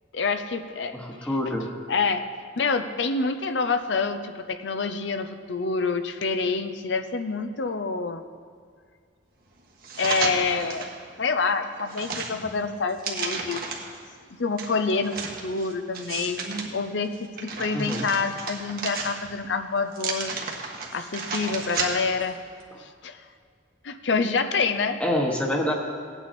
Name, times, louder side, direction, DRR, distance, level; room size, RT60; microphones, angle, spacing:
voice 1, 0.1-1.0 1.9-2.2 2.6-8.2 10.0-10.9 11.2-13.6 14.4-15.1 15.4-16.4 16.7-20.3 20.9-22.4 22.8-23.2 23.8-25.0, left 4 dB, 70° left, 9 dB, 0.7 m, -27 dB
voice 2, 0.9-1.7 17.7-18.1 22.7-22.8 25.0-25.7, left 1 dB, 5° left, 0 dB, 1.1 m, -26 dB
sound 1, 9.8-11.0 11.4-14.0 14.6-16.7 17.1-19.4 19.9-22.2 22.6-22.7, right 4 dB, 55° right, 1.4 m, -33 dB
16.5 x 9.1 x 4.3 m, 2.1 s
head